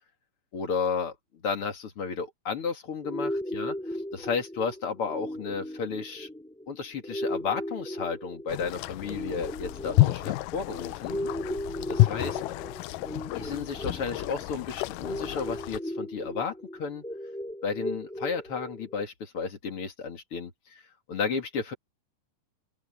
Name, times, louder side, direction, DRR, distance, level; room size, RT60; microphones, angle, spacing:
voice 1, 0.5-1.1 1.4-6.3 6.7-11.2 11.9-12.4 13.3-17.0 17.6-20.8 21.1-21.7, left 5 dB, 45° left, 2.8 m, -33 dB
sound 1, 3.0-19.0, equal, ahead, 4.9 m, -37 dB
sound 2, 8.5-15.8, left 18 dB, 85° left, 2.1 m, -29 dB
open air
omnidirectional pair, 3.8 m